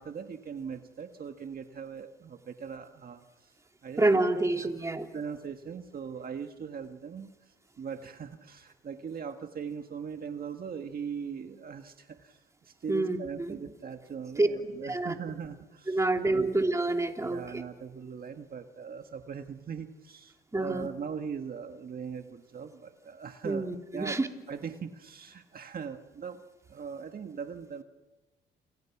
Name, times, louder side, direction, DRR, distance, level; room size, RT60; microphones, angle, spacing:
voice 1, 0.0-3.5 3.8-4.7 5.1-16.0 16.3-16.5 17.2-24.2 24.5-26.4 26.7-27.8, right 6 dB, 50° right, 6 dB, 1.7 m, -40 dB
voice 2, 4.0-5.1 12.9-13.6 14.4-14.5 14.9-15.1 15.9-17.4 20.5-20.9 23.4-24.3, right 2 dB, 15° right, 4 dB, 2.9 m, -27 dB
29.0 x 29.0 x 6.0 m, 1.2 s
cardioid pair, 90°, 20 cm